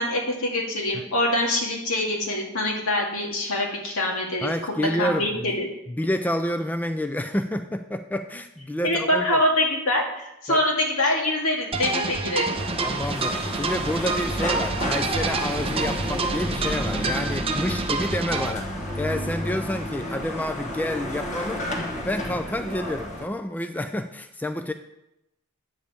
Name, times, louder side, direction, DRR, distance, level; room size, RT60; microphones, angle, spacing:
voice 1, 0.0-5.7 8.8-12.6, left 1 dB, 75° left, -1 dB, 2.1 m, -24 dB
voice 2, 4.4-5.6 5.9-9.2 10.5-10.6 12.8-21.8 22.0-24.7, left 1 dB, 10° left, 8 dB, 0.3 m, -29 dB
sound 1, 11.7-18.5, right 3 dB, 25° right, 0.7 m, -28 dB
sound 2, 12.5-23.2, equal, 35° left, 1.3 m, -31 dB
9.0 x 5.3 x 6.9 m, 0.86 s
head